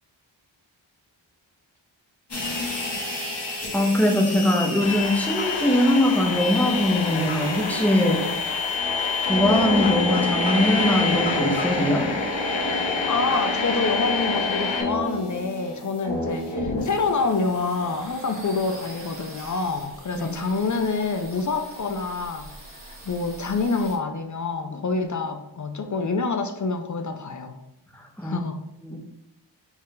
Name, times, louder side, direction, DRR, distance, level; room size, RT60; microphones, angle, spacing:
sound 1, 2.3-18.0, left 1 dB, 60° left, 1.3 m, -30 dB
voice 1, 3.7-8.2 9.2-12.1 20.1-20.3 28.0-28.5 28.8-29.0, left 1 dB, 5° left, 0 dB, 0.7 m, -22 dB
sound 2, 4.8-14.8, left 5 dB, 80° left, 0.8 m, -27 dB
voice 2, 13.1-27.5 28.2-28.6, left 4 dB, 40° left, 6 dB, 0.5 m, -27 dB
sound 3, 16.8-24.0, right 1 dB, 30° right, 1.1 m, -44 dB
4.4 x 2.4 x 3.8 m, 0.89 s
wide cardioid pair, 70°, 47 cm